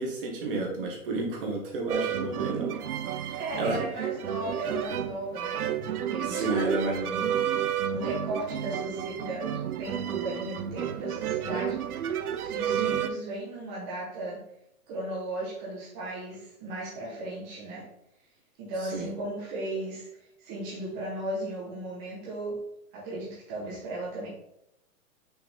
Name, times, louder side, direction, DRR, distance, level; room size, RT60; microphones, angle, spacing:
voice 1, 0.0-2.8 3.2-3.8 6.2-7.1 18.9-19.1, right 3 dB, 40° right, 0 dB, 1.5 m, -31 dB
sound 1, 1.9-13.1, right 9 dB, 85° right, 0.7 m, -31 dB
voice 2, 3.0-5.6 6.0-11.8 12.4-14.4 14.9-17.9 18.6-20.1 20.4-22.6 22.9-24.3, right 1 dB, 15° right, -7 dB, 1.0 m, -36 dB
6.0 x 4.9 x 3.4 m, 0.79 s
hypercardioid pair, 170°, 44 cm